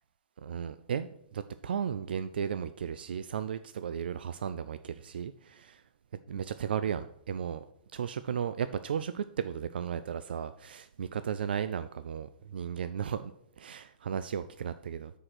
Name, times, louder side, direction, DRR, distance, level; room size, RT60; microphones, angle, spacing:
voice 1, 0.4-5.8 6.3-7.6 7.9-15.1, right 8 dB, 75° right, 12 dB, 0.4 m, -35 dB
6.3 x 4.8 x 6.0 m, 0.70 s
hypercardioid pair, 170°, 5 cm